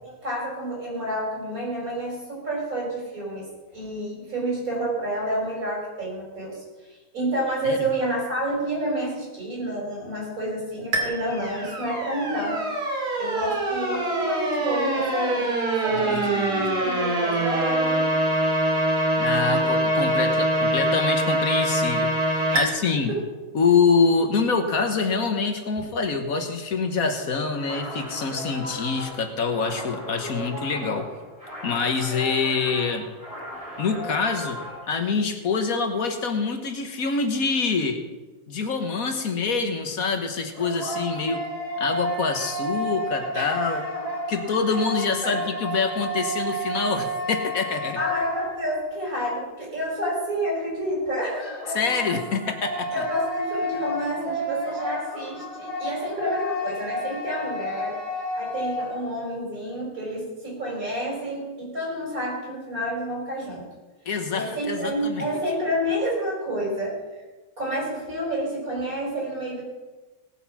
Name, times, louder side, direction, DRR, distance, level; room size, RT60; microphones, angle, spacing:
voice 1, 0.0-3.5 3.7-6.6 6.9-12.6 13.2-15.5 15.8-18.1 22.5-23.2 43.3-43.8 44.7-44.8 45.2-45.4 48.0-51.6 52.9-58.0 58.3-63.6 64.3-67.2 67.6-69.6, right 1 dB, 60° right, -3 dB, 5.7 m, -29 dB
sound 1, 10.9-22.6, right 1 dB, 90° right, 3.0 m, -24 dB
voice 2, 15.9-16.6 19.2-23.1 23.5-31.1 31.6-33.1 33.8-34.6 34.9-38.0 38.5-41.5 41.8-43.8 44.3-48.0 51.7-53.1 64.0-65.2, left 5 dB, 65° left, 6 dB, 1.6 m, -25 dB
sound 2, 27.5-34.9, left 1 dB, 20° right, 5.8 m, -37 dB
sound 3, 40.3-49.0 51.3-59.1, equal, 20° left, 2.7 m, -31 dB
18.0 x 7.9 x 6.0 m, 1.2 s
omnidirectional pair, 1.6 m